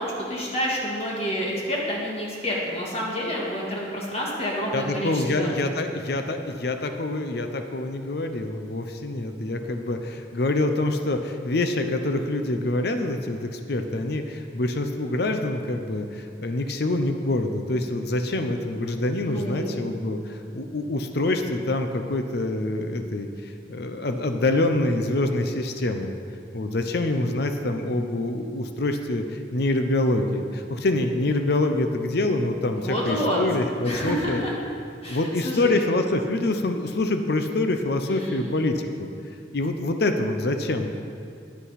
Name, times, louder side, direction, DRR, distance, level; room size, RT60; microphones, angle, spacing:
voice 1, 0.0-5.5 19.2-19.7 32.8-33.4 33.8-34.5 35.0-35.8 38.0-38.6, equal, 35° left, -3 dB, 1.9 m, -28 dB
voice 2, 4.7-26.1 26.5-34.4 35.1-39.1 39.5-40.9, left 2 dB, 60° left, 6 dB, 0.6 m, -26 dB
10.5 x 8.2 x 5.7 m, 2.4 s
head